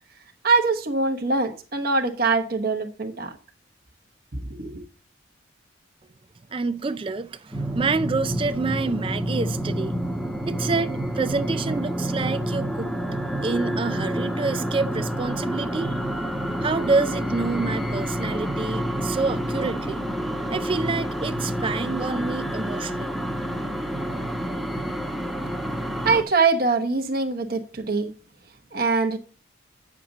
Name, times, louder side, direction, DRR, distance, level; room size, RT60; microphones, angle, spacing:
voice 1, 0.4-3.3 4.6-4.8 26.0-28.1 28.7-29.2, right 4 dB, 45° right, 1.0 m, -23 dB
voice 2, 6.5-10.0 10.5-12.9 13.4-16.0 16.6-20.1 20.5-23.2, right 4 dB, 25° right, 0.3 m, -27 dB
sound 1, 7.5-26.2, equal, ahead, 1.0 m, -28 dB
9.2 x 6.6 x 3.9 m
head